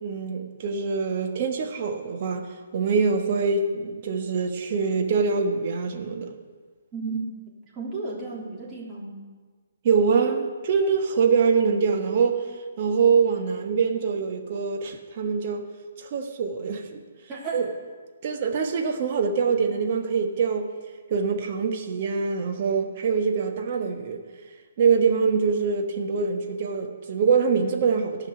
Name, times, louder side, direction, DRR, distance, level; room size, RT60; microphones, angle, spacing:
voice 1, 0.0-6.3 9.8-12.4 12.8-15.7 16.0-17.0 17.5-17.6 18.2-20.7 21.1-24.2 24.8-28.3, right 5 dB, 45° right, 1.4 m, -24 dB
voice 2, 6.9-7.2 7.7-9.2 17.3-17.6, right 4 dB, 20° right, 3.0 m, -33 dB
13.0 x 5.8 x 8.2 m
figure-of-eight pair, 135°, 0 cm